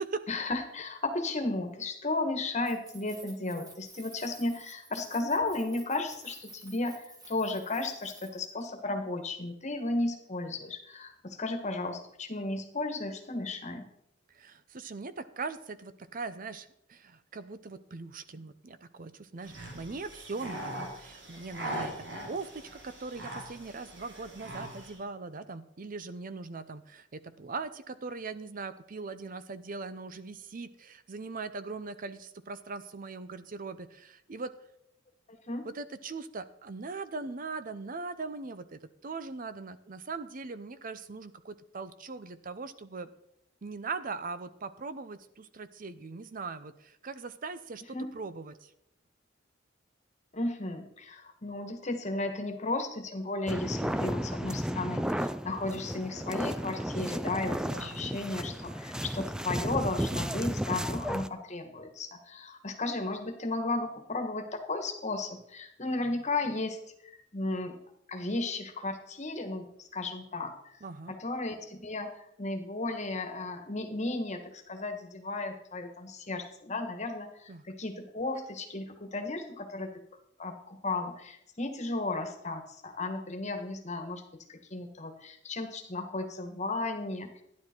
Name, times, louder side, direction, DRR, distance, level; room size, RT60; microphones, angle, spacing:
voice 1, 0.3-13.9 35.5-35.7 47.9-48.1 50.3-66.8 67.0-67.8 68.1-70.8 71.1-79.9 80.4-84.2 84.5-87.4, left 2 dB, 35° left, 5 dB, 1.5 m, -34 dB
Keys jangling, 2.6-8.7, right 2 dB, 20° right, 1.7 m, -52 dB
voice 2, 14.3-34.5 35.6-43.1 43.6-48.7 57.7-58.0 70.8-71.2 77.5-77.6, right 4 dB, 45° right, 13 dB, 0.7 m, -40 dB
sound 1, 19.4-25.0, right 1 dB, 65° right, 3.1 m, -41 dB
sound 2, 53.5-61.3, equal, 5° right, 0.3 m, -33 dB
12.0 x 10.5 x 4.5 m, 0.76 s
head